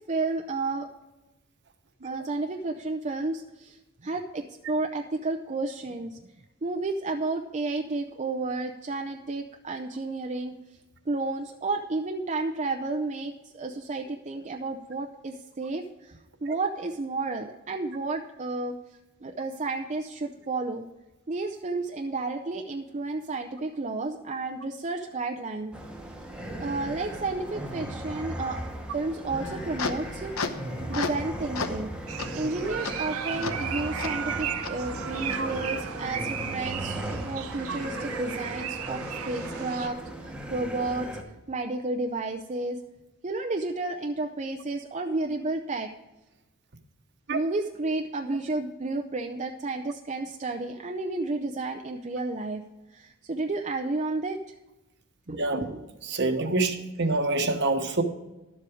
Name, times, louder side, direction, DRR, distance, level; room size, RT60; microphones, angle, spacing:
voice 1, 0.1-0.9 2.0-6.3 6.6-10.5 11.1-18.8 19.2-20.9 21.3-25.7 26.6-28.6 28.9-30.3 30.9-31.9 32.3-42.8 43.2-45.9 47.3-52.6 52.9-54.4 55.3-55.8, right 3 dB, 35° right, 4 dB, 0.6 m, -32 dB
sound 1, 25.7-41.2, right 1 dB, 5° right, 1.2 m, -37 dB
sound 2, 29.4-31.3 31.6-31.8 32.2-32.3 32.8-32.9 33.4-33.5 34.0-34.1 34.6-34.7 35.3-35.4, left 4 dB, 75° left, 0.9 m, -33 dB
sound 3, 32.1-39.9, right 7 dB, 80° right, 0.7 m, -35 dB
voice 2, 55.4-55.7 56.0-58.0, right 2 dB, 55° right, 7 dB, 1.1 m, -26 dB
12.0 x 7.6 x 4.9 m, 1.1 s
head